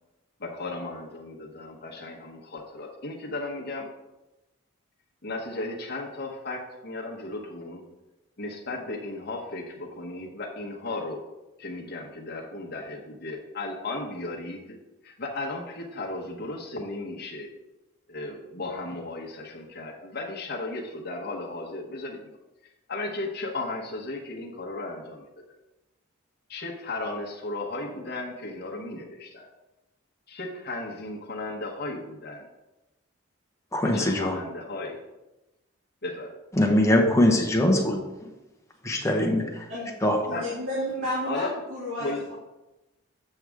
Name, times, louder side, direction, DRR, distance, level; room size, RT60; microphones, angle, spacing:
voice 1, 0.4-3.9 5.2-7.8 8.4-11.2 11.6-14.8 15.0-17.5 18.1-22.4 22.9-25.3 26.5-29.5 30.3-32.5 33.8-35.0 36.0-36.3 40.3-40.5 41.2-41.5 42.0-42.2, left 2 dB, 50° left, -2 dB, 1.0 m, -35 dB
voice 2, 33.7-34.3 36.6-38.3 38.8-39.7 40.0-40.2, left 1 dB, 15° left, 1 dB, 0.9 m, -22 dB
voice 3, 40.2-42.3, equal, 80° right, -9 dB, 2.6 m, -31 dB
7.8 x 6.2 x 3.5 m, 1.0 s
head